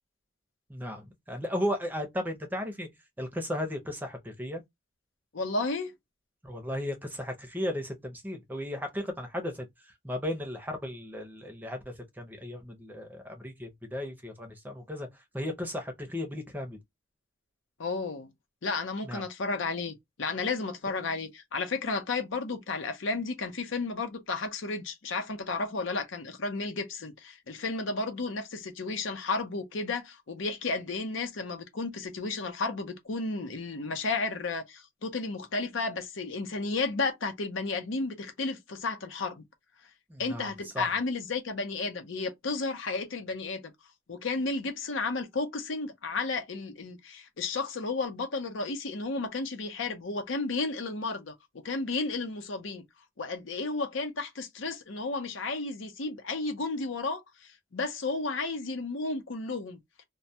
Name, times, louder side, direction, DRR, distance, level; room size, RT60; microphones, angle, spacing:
voice 1, 0.7-2.9 3.2-4.6 6.4-9.7 10.0-11.8 12.2-15.1 15.3-16.8 19.0-19.2 40.1-40.9, left 1 dB, 10° right, 0.6 m, -35 dB
voice 2, 5.3-5.9 17.8-18.3 18.6-39.4 40.2-43.7 44.1-51.3 51.6-52.8 53.2-59.8, left 3 dB, 75° left, 0.7 m, -33 dB
2.2 x 2.2 x 2.7 m
head